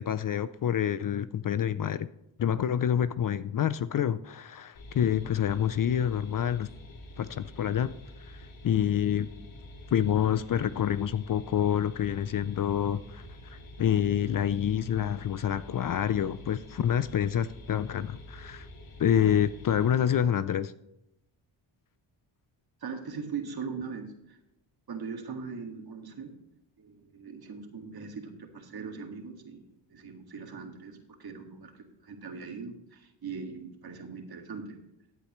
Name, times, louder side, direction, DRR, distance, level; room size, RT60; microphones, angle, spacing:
voice 1, 0.0-2.1 2.4-6.7 7.2-7.9 8.2-9.3 9.9-18.7 19.0-20.7, left 9 dB, 45° left, 15 dB, 0.5 m, -27 dB
sound 1, 4.7-19.9, left 1 dB, 70° left, 2.6 m, -47 dB
voice 2, 22.8-24.4 24.9-26.3 26.8-29.6 29.9-34.8, right 5 dB, 50° right, 4 dB, 2.1 m, -40 dB
15.0 x 8.4 x 3.1 m, 0.85 s
cardioid pair, 85°, 48 cm